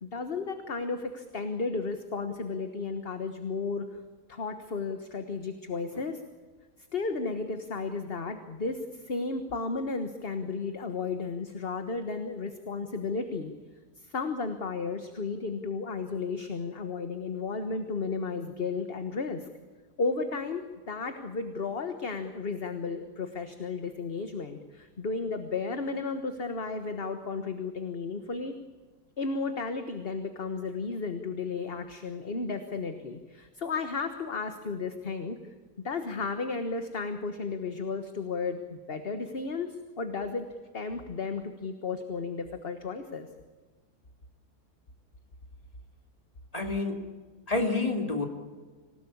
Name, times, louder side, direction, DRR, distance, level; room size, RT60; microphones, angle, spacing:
voice 1, 0.0-3.9 4.3-6.2 6.9-13.5 14.0-19.5 20.0-28.6 29.2-35.4 35.8-40.5 40.7-43.3, left 4 dB, 40° left, 8 dB, 1.5 m, -33 dB
voice 2, 46.5-47.0 47.5-48.3, left 3 dB, 20° left, 4 dB, 3.2 m, -28 dB
26.5 x 17.5 x 8.6 m, 1.4 s
omnidirectional pair, 1.7 m